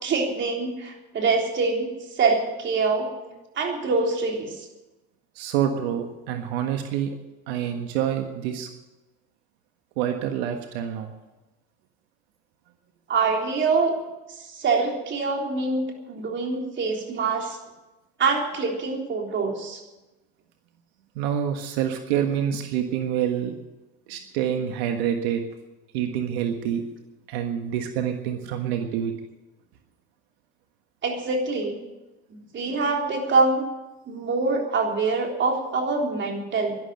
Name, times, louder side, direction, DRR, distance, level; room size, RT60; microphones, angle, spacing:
voice 1, 0.0-1.9 2.2-3.1 3.6-4.5 13.1-14.0 14.5-17.6 18.2-19.8 31.0-31.8 32.3-33.7 34.1-36.8, right 4 dB, 35° right, 2 dB, 3.7 m, -25 dB
voice 2, 5.3-7.1 7.5-8.7 10.0-11.1 21.1-23.5 24.1-25.4 25.9-26.8 27.3-29.1, right 9 dB, 85° right, 5 dB, 1.6 m, -27 dB
12.5 x 11.5 x 8.9 m, 1.1 s
supercardioid pair, 110°, 31 cm